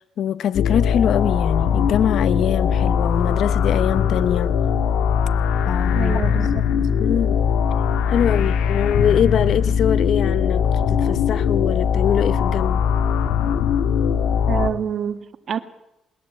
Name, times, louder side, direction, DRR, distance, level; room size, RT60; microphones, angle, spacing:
voice 1, 0.0-4.6 5.7-6.2 7.0-7.4 8.1-12.8, left 9 dB, 70° left, 0.7 m, -23 dB
sound 1, 0.5-14.7, left 7 dB, 90° left, 1.5 m, -20 dB
voice 2, 5.9-6.6 14.5-15.6, right 8 dB, 60° right, 1.8 m, -26 dB
20.5 x 20.5 x 8.4 m
cardioid pair, 90°, 0 cm